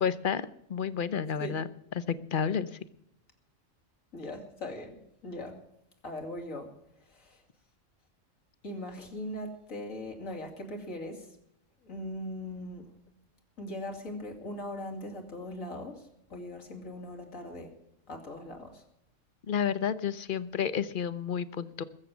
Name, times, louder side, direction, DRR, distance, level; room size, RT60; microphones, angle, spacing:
voice 1, 0.0-1.7 1.9-2.8 19.5-21.8, left 7 dB, 45° left, 15 dB, 0.8 m, -31 dB
voice 2, 4.1-5.6 6.0-6.7 7.0-7.4 8.6-11.4 11.8-12.9 13.6-17.8 18.1-18.8, left 1 dB, 85° left, 2 dB, 3.0 m, -40 dB
21.0 x 7.5 x 7.1 m, 0.77 s
omnidirectional pair, 1.4 m